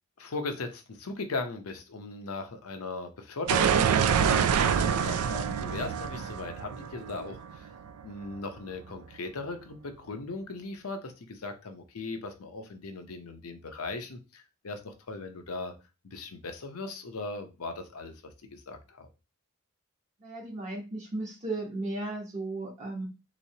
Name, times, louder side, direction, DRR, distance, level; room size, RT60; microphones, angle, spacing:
voice 1, 0.2-7.7 8.0-15.7 16.0-19.1, left 3 dB, 85° left, 7 dB, 0.7 m, -38 dB
sound 1, 3.5-8.2, right 7 dB, 80° right, 0.3 m, -26 dB
voice 2, 20.2-23.1, right 2 dB, 35° right, -1 dB, 0.9 m, -35 dB
3.7 x 3.0 x 2.7 m, 0.29 s
head